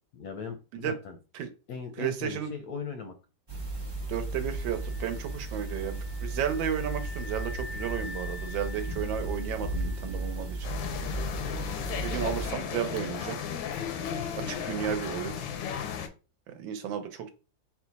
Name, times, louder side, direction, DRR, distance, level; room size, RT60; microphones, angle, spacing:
voice 1, 0.1-1.2 1.7-3.1, left 5 dB, 70° left, 5 dB, 0.9 m, -38 dB
voice 2, 2.0-2.5 4.1-10.7 11.9-13.4 14.4-15.4 16.5-17.3, right 9 dB, 80° right, 6 dB, 1.5 m, -33 dB
sound 1, 3.5-12.5, right 2 dB, 25° right, 0.6 m, -35 dB
sound 2, 4.5-11.3, left 3 dB, 40° left, 0.6 m, -47 dB
sound 3, 10.6-16.1, left 8 dB, 90° left, 1.4 m, -34 dB
4.2 x 2.3 x 4.0 m, 0.32 s
omnidirectional pair, 2.1 m